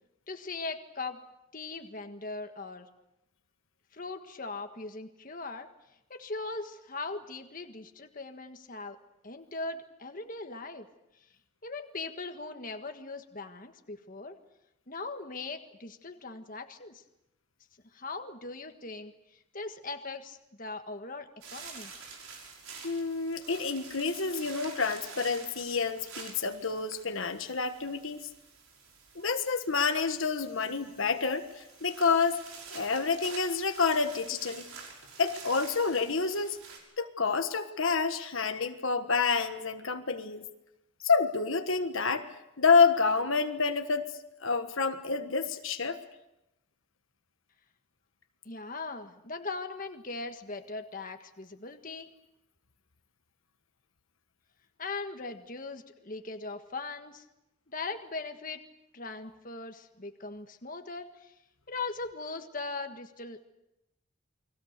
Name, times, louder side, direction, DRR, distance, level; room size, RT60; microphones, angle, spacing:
voice 1, 0.3-1.2 1.5-2.9 3.9-5.7 6.1-9.0 9.2-10.9 11.6-14.4 14.9-17.0 17.9-19.1 19.5-21.9 48.4-52.1 54.8-57.2 57.7-58.6 58.9-61.3 61.7-63.5, left 3 dB, 40° left, 6 dB, 1.6 m, -39 dB
sound 1, 21.4-36.8, right 5 dB, 85° right, 6.1 m, -48 dB
voice 2, 22.8-28.3 29.1-32.4 32.7-34.7 35.2-36.6 37.0-40.4 41.0-46.0, left 4 dB, 70° left, 7 dB, 1.5 m, -28 dB
30.0 x 22.0 x 6.7 m, 0.89 s
head